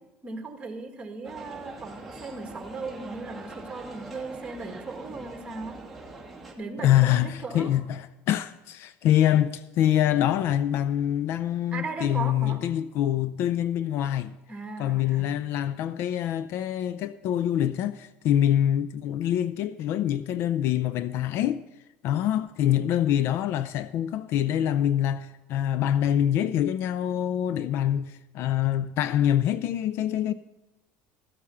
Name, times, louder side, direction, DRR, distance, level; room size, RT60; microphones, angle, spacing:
voice 1, 0.2-5.8 6.6-7.7 11.7-12.6 14.5-15.3, right 3 dB, 20° right, 1.9 m, -37 dB
sound 1, 1.2-6.5, right 3 dB, 5° left, 2.4 m, -43 dB
voice 2, 6.8-14.3 14.8-21.7 22.0-30.3, left 11 dB, 60° left, 0.4 m, -25 dB
14.0 x 8.5 x 5.6 m
supercardioid pair, 120°, 5 cm